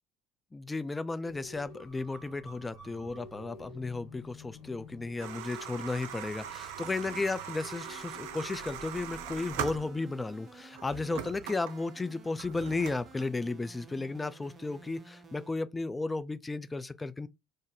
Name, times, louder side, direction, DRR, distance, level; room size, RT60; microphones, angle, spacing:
voice 1, 0.5-17.3, left 3 dB, 20° left, 0.3 m, -34 dB
sound 1, 1.2-9.8, left 1 dB, 70° left, 0.9 m, -50 dB
sound 2, 5.2-10.3 10.7-13.3, right 9 dB, 75° right, 0.4 m, -41 dB
sound 3, 6.8-15.5, right 4 dB, 30° right, 0.8 m, -54 dB
2.5 x 2.5 x 4.0 m
hypercardioid pair, 70°, 0 cm